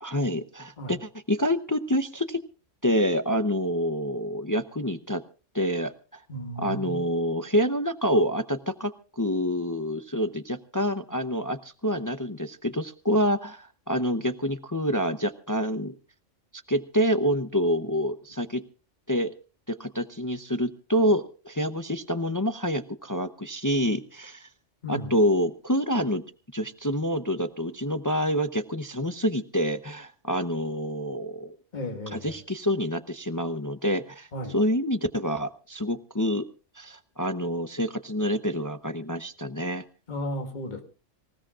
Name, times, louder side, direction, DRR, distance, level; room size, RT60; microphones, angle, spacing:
voice 1, 0.0-2.4 2.8-5.2 5.5-6.2 6.6-15.9 16.7-18.6 19.1-19.3 19.7-24.5 24.9-26.2 26.5-31.6 32.1-36.4 36.7-39.8, equal, 20° left, 9 dB, 0.6 m, -27 dB
voice 2, 6.3-7.0 24.8-25.1 31.7-32.3 34.3-34.6 40.1-40.8, equal, 40° left, 3 dB, 2.0 m, -34 dB
25.5 x 16.5 x 2.4 m, 0.35 s
omnidirectional pair, 1.2 m